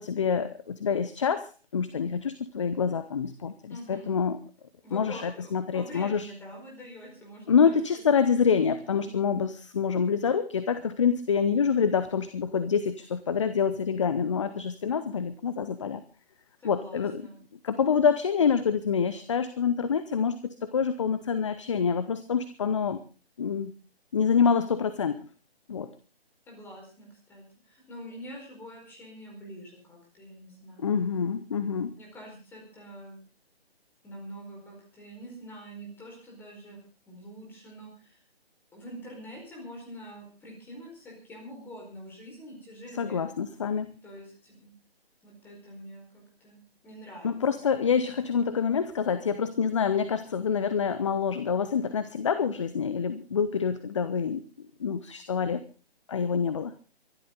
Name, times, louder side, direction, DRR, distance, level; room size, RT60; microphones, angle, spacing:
voice 1, 0.0-4.4 4.9-6.3 7.5-16.0 16.6-17.2 17.6-23.0 23.4-23.7 24.1-25.3 25.7-25.9 30.8-31.9 43.0-43.9 47.2-54.4 54.8-55.6 56.1-56.7, left 6 dB, 30° left, 13 dB, 0.8 m, -26 dB
voice 2, 3.7-4.1 4.8-8.1 9.0-9.3 16.6-17.4 26.5-30.9 32.0-33.2 34.0-36.8 37.1-38.2 38.7-43.3 44.0-44.7 45.2-47.3, equal, 5° left, -1 dB, 4.8 m, -45 dB
23.5 x 12.0 x 3.9 m, 0.35 s
figure-of-eight pair, 150°, 32 cm